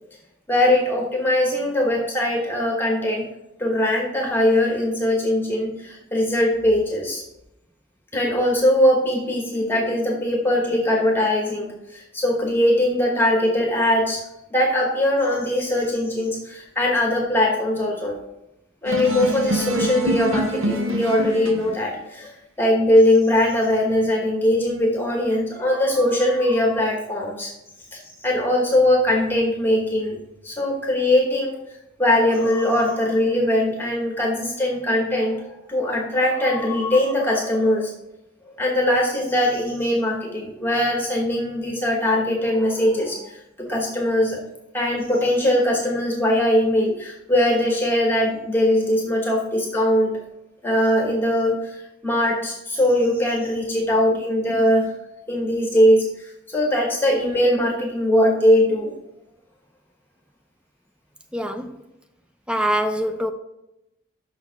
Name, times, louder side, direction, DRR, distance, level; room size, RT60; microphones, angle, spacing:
voice 1, 0.5-3.2 3.6-7.2 8.1-14.2 14.5-18.1 18.8-27.5 27.9-30.2 30.4-31.6 32.0-37.9 38.5-44.4 44.7-50.1 50.6-54.9 55.3-58.9, left 1 dB, 10° left, 0 dB, 1.1 m, -21 dB
sound 1, 18.9-21.8, right 1 dB, 85° right, 0.9 m, -25 dB
voice 2, 61.3-61.8 62.5-63.3, right 1 dB, 5° right, 7 dB, 0.5 m, -24 dB
6.5 x 5.9 x 3.9 m, 0.89 s
head